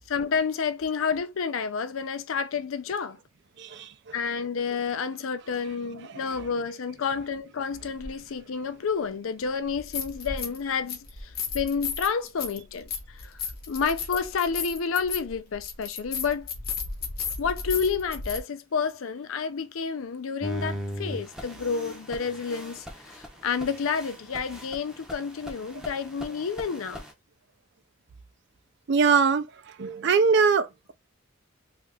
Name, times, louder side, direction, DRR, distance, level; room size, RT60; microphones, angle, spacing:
voice 1, 0.1-3.2 4.1-13.4 13.7-16.5 17.4-27.0, left 5 dB, 75° left, 0.5 m, -30 dB
voice 2, 3.6-3.9 6.1-6.3 28.9-29.5 29.8-30.9, right 5 dB, 55° right, 0.4 m, -22 dB
sound 1, 8.0-8.1 9.7-10.6 10.9-18.4, left 5 dB, 45° left, 0.7 m, -34 dB
sound 2, 20.4-27.1, equal, 5° right, 0.6 m, -39 dB
2.8 x 2.4 x 3.3 m
head